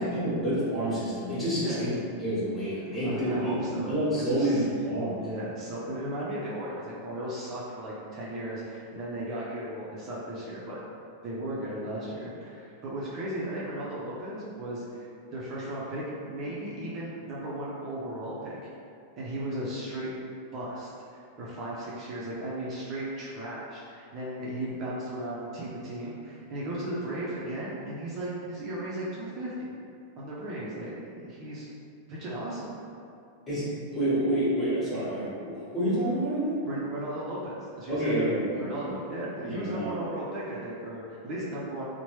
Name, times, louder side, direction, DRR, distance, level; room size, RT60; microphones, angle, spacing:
voice 1, 0.0-1.9 2.2-5.2 33.5-36.6 37.9-38.9 39.4-40.1, right 1 dB, 15° left, -10 dB, 1.3 m, -28 dB
voice 2, 2.9-4.6 5.2-10.8 11.2-18.6 19.2-20.1 20.5-29.5 30.2-31.7 32.1-32.7 36.7-41.9, right 1 dB, 40° right, -7 dB, 0.6 m, -36 dB
2.9 x 2.1 x 3.1 m, 2.4 s
hypercardioid pair, 105°, 0 cm